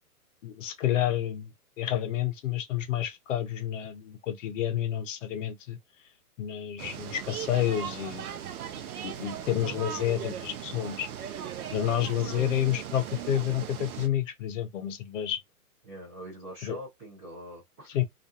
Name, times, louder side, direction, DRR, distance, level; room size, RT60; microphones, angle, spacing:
voice 1, 0.4-1.5 1.8-5.8 6.4-8.3 9.0-11.1 11.7-15.4 16.6-16.8 17.9-18.0, left 11 dB, 55° left, 0.7 m, -29 dB
sound 1, 6.8-14.1, right 9 dB, 70° right, 0.6 m, -38 dB
voice 2, 9.4-9.9 12.2-12.6 15.8-18.0, right 1 dB, 10° right, 0.4 m, -43 dB
2.4 x 2.3 x 2.6 m
hypercardioid pair, 130°, 45 cm